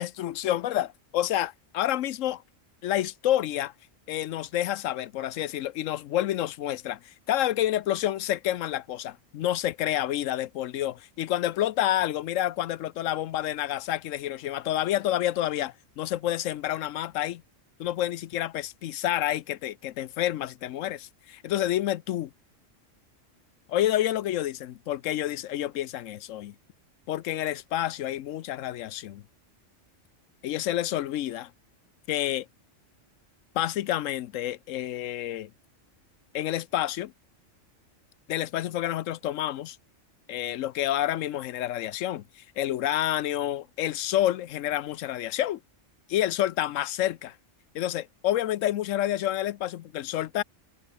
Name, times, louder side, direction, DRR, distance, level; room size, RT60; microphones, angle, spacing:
voice 1, 0.0-2.4 2.8-3.7 4.1-17.4 17.8-22.3 23.7-26.5 27.1-29.2 30.4-31.5 32.1-32.5 33.5-35.5 36.3-37.1 38.3-39.8 40.3-45.6 46.1-47.3 47.7-50.4, left 13 dB, 90° left, 1.0 m, -29 dB
omnidirectional pair, 1.3 m